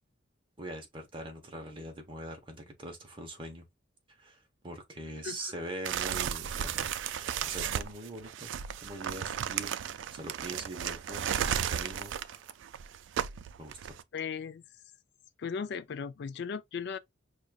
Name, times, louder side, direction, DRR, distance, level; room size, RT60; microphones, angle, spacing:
voice 1, 0.6-3.7 4.1-8.5 8.8-12.5 13.6-14.0, right 1 dB, 25° right, 0.9 m, -43 dB
Handling and opening a large brown paper padded envelope, 5.9-14.0, right 9 dB, 65° right, 0.3 m, -34 dB
voice 2, 14.1-14.8 15.4-17.0, left 6 dB, 60° left, 0.4 m, -37 dB
5.0 x 2.4 x 2.3 m
head